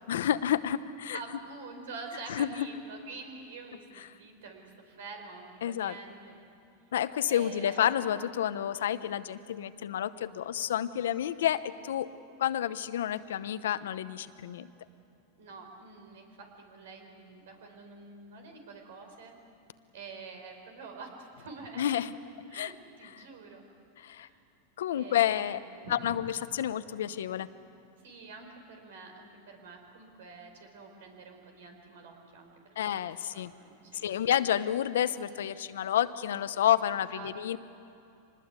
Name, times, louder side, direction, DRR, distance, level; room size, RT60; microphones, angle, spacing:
voice 1, 0.1-1.2 2.3-2.7 5.6-6.0 6.9-12.1 12.4-14.7 21.8-22.1 22.5-22.7 24.0-24.3 24.8-25.6 25.9-27.5 32.8-33.5 34.0-37.6, left 10 dB, 85° left, 13 dB, 0.9 m, -29 dB
voice 2, 1.1-6.4 7.3-8.1 15.4-19.4 19.9-22.1 22.5-23.6 24.0-24.4 24.9-26.2 28.0-32.5 33.0-34.1 36.9-37.3, right 4 dB, 80° right, 4 dB, 4.9 m, -47 dB
25.0 x 20.0 x 8.3 m, 2.7 s
hypercardioid pair, 125°, 0 cm